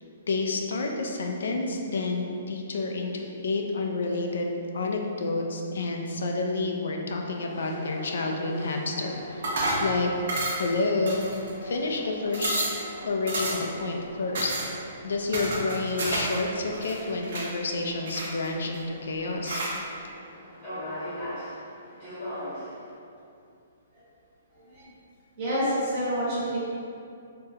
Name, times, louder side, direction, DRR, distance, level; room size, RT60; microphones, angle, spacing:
voice 1, 0.3-9.5 9.8-10.1 10.6-11.2 11.6-12.6 13.0-14.6 15.0-19.6, left 3 dB, 65° left, 2 dB, 0.4 m, -29 dB
sound 1, 7.3-22.9, equal, 25° left, 0.9 m, -41 dB
sound 2, 9.4-9.9 10.3-10.7 11.1-11.7 12.0-12.1 12.3-12.8 13.3-13.7 14.3-14.7 15.3-16.4 16.7-17.5 18.1-18.8 19.4-19.8, right 2 dB, 50° right, 0.5 m, -30 dB
voice 2, 25.4-26.6, equal, 20° right, -11 dB, 1.1 m, -28 dB
3.4 x 2.2 x 2.8 m, 2.5 s
hypercardioid pair, 180°, 0 cm